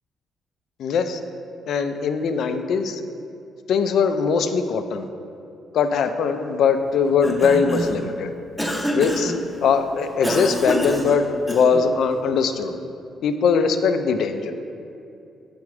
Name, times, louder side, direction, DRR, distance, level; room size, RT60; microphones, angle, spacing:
voice 1, 0.8-1.2 1.7-3.0 3.7-5.1 5.7-8.3 8.9-9.3 9.6-12.8 13.2-14.5, left 5 dB, 70° left, 8 dB, 0.3 m, -21 dB
Cough, 7.0-8.1 8.6-9.4 10.2-11.9, equal, ahead, 0.6 m, -26 dB
4.8 x 4.2 x 4.8 m, 2.6 s
cardioid pair, 90°, 0 cm